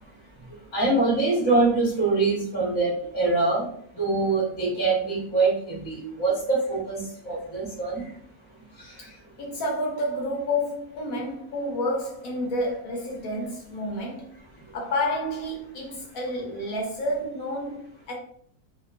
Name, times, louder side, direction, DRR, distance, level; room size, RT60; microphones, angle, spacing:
voice 1, 0.7-3.7 3.9-8.0 8.8-8.9, right 3 dB, 20° left, 0.7 m, -24 dB
voice 2, 9.4-14.3 14.7-18.1, left 1 dB, 70° left, 1.1 m, -29 dB
2.8 x 2.0 x 2.4 m
omnidirectional pair, 1.6 m